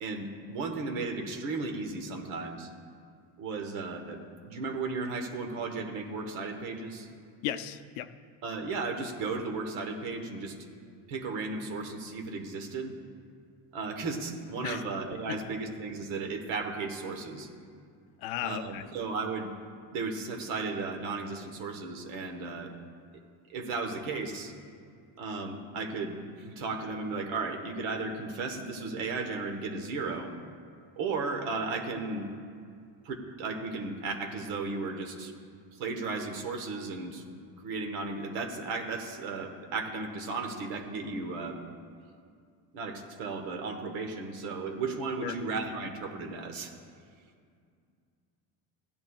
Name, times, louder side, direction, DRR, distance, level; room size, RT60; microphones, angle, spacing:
voice 1, 0.0-2.7 3.4-7.1 8.4-10.5 11.1-12.9 13.7-17.5 18.4-19.5 19.9-22.7 23.5-24.5 25.2-30.3 31.0-32.3 33.0-35.3 35.7-37.2 37.6-41.6 42.7-46.7, right 3 dB, 80° right, 4 dB, 1.4 m, -35 dB
voice 2, 7.4-8.1 14.6-14.8 15.3-15.4 18.2-18.8 45.2-45.3, left 12 dB, 90° left, 11 dB, 0.6 m, -35 dB
16.0 x 10.5 x 2.4 m, 2.2 s
cardioid pair, 115°, 47 cm